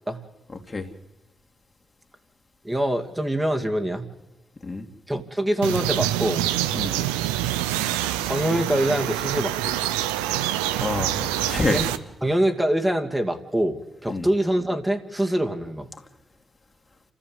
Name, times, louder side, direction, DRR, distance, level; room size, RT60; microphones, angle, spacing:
voice 1, 2.6-4.1 5.1-6.4 8.2-9.8 11.7-11.9 12.2-15.9, right 1 dB, 15° right, 4 dB, 2.4 m, -24 dB
sound 1, 5.6-12.0, right 13 dB, 85° right, 0.7 m, -26 dB
voice 2, 10.4-11.9 14.1-14.3, left 3 dB, 35° left, 4 dB, 2.6 m, -28 dB
29.0 x 15.0 x 8.1 m, 1.1 s
hypercardioid pair, 40°, 0 cm